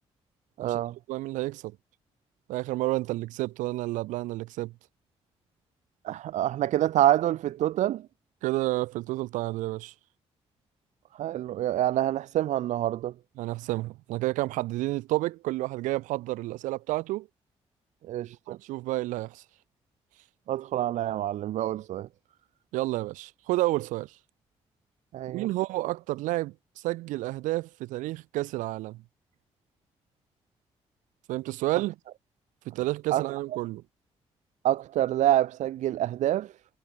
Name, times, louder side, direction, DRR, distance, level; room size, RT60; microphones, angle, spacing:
voice 1, 0.6-1.0 6.0-8.1 11.1-13.1 18.0-18.6 20.5-22.1 25.1-25.5 33.1-33.3 34.6-36.5, right 13 dB, 70° right, 0.4 m, -26 dB
voice 2, 1.1-1.8 2.5-4.7 8.4-9.9 13.4-17.3 18.5-19.4 22.7-24.1 25.3-26.5 26.8-29.0 31.3-32.0 32.7-33.8, right 18 dB, 85° right, 2.2 m, -30 dB
supercardioid pair, 50°, 13 cm